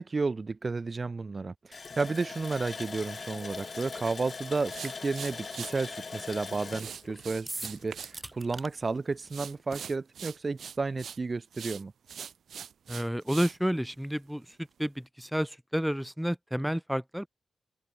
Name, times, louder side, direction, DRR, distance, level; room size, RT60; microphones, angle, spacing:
voice 1, 0.0-11.9, right 4 dB, 35° right, 1.3 m, -32 dB
Water tap faucet, 1.7-8.2 8.5-8.6 9.1-9.3, left 4 dB, 45° left, 0.8 m, -41 dB
sound 1, 4.7-5.7 6.7-8.1 8.4-8.9 9.3-11.2 11.5-13.6, right 8 dB, 85° right, 0.7 m, -42 dB
sound 2, 7.5-8.7, right 2 dB, 20° right, 0.5 m, -39 dB
voice 2, 12.9-14.4 14.8-17.3, equal, ahead, 1.3 m, -30 dB
open air
wide cardioid pair, 125°, 0 cm